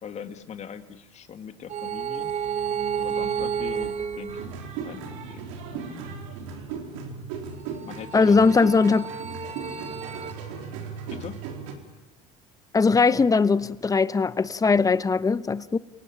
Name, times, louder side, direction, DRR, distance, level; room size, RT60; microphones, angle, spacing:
voice 1, 0.0-2.3 3.0-5.5 7.8-8.8 11.1-11.4, left 7 dB, 45° left, 2.3 m, -40 dB
sound 1, 1.7-4.9 7.7-10.3, right 7 dB, 50° right, 1.8 m, -31 dB
sound 2, 4.3-11.7, right 5 dB, 85° right, 4.1 m, -37 dB
voice 2, 8.1-9.1 12.7-15.8, left 4 dB, 20° left, 1.0 m, -20 dB
29.5 x 18.0 x 8.9 m
supercardioid pair, 85°, 16 cm